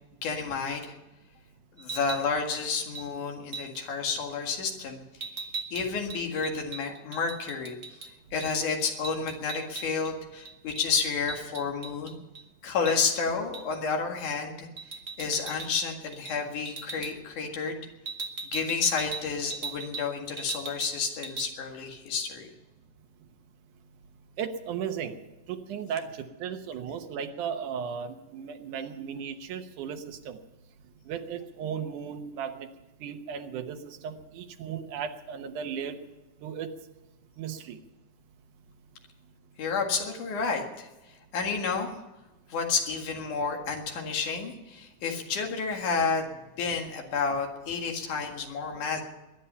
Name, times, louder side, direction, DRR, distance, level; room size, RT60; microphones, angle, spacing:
voice 1, 0.2-1.0 1.8-5.0 5.7-7.8 8.3-12.2 12.6-14.7 15.2-17.9 18.5-22.5 39.6-40.9 41.3-41.9 42.5-46.3 46.6-49.0, left 5 dB, 85° left, 2 dB, 3.4 m, -30 dB
sound 1, 1.8-2.3 2.9-3.1 3.5-3.8 5.2-8.1 8.4-8.5 8.8-10.1 10.4-12.4 12.8-13.0 13.5-13.8 14.8-15.8 16.1-16.4 16.6-17.1 18.0-20.1 20.4-21.0 21.2-21.5, right 4 dB, 65° right, 0.6 m, -39 dB
voice 2, 24.4-30.4 31.1-32.7 33.0-36.1 36.4-36.8 37.4-37.8, right 7 dB, 85° right, 6 dB, 2.6 m, -36 dB
21.5 x 10.5 x 5.6 m, 1.1 s
omnidirectional pair, 3.4 m